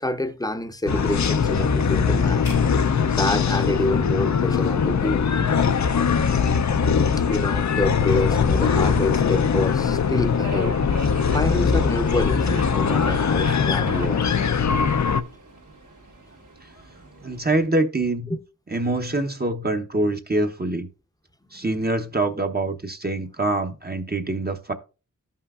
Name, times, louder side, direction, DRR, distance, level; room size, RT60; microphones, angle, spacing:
voice 1, 0.0-2.5 3.2-5.3 7.3-10.8 11.3-14.3 18.3-18.4 21.5-21.7, left 1 dB, 10° left, 0.7 m, -27 dB
sound 1, 0.9-15.2, left 6 dB, 55° left, 0.6 m, -21 dB
sound 2, 2.4-4.7, left 4 dB, 90° left, 2.4 m, -38 dB
Subway metro underground, 5.6-17.7, equal, 65° right, 1.9 m, -40 dB
voice 2, 17.2-18.3 18.7-20.9 21.5-24.7, right 2 dB, 30° right, 0.8 m, -25 dB
13.5 x 5.7 x 2.4 m
wide cardioid pair, 65°, 34 cm